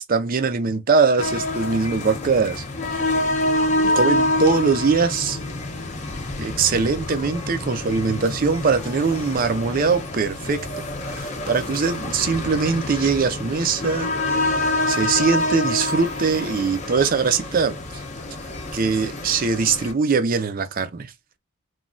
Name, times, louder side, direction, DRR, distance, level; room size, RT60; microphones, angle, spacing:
voice 1, 0.1-2.6 3.8-5.4 6.4-18.0 18.7-21.1, right 5 dB, 40° right, 0.4 m, -22 dB
sound 1, 1.2-19.9, left 2 dB, 30° left, 0.5 m, -27 dB
3.1 x 2.2 x 2.5 m
head